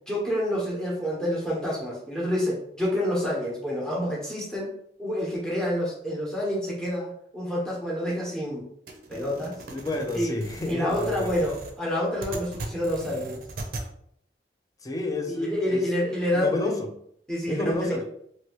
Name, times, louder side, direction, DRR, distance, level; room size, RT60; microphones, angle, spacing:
voice 1, 0.1-4.7 5.0-8.6 9.1-9.6 10.1-10.3 10.6-13.4 15.4-16.7 17.3-18.0, equal, 5° left, -4 dB, 1.0 m, -28 dB
sound 1, 8.9-13.9, right 2 dB, 55° right, 0.5 m, -39 dB
voice 2, 9.7-11.5 14.8-15.9 16.3-16.9 17.5-18.0, left 2 dB, 20° left, 3 dB, 0.4 m, -30 dB
2.9 x 2.7 x 3.0 m, 0.69 s
head